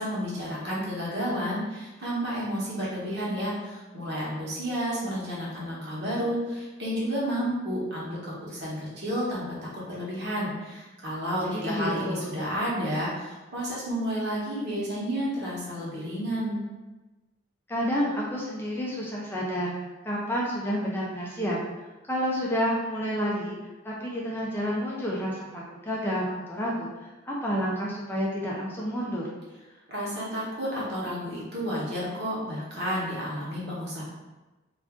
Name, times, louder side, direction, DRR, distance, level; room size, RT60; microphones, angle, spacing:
voice 1, 0.0-16.6 29.9-34.0, equal, 55° right, -7 dB, 1.0 m, -31 dB
voice 2, 11.5-12.4 17.7-19.7 20.0-21.6 22.1-23.6 23.8-29.3, equal, 10° left, -4 dB, 0.4 m, -29 dB
2.5 x 2.4 x 3.5 m, 1.1 s
head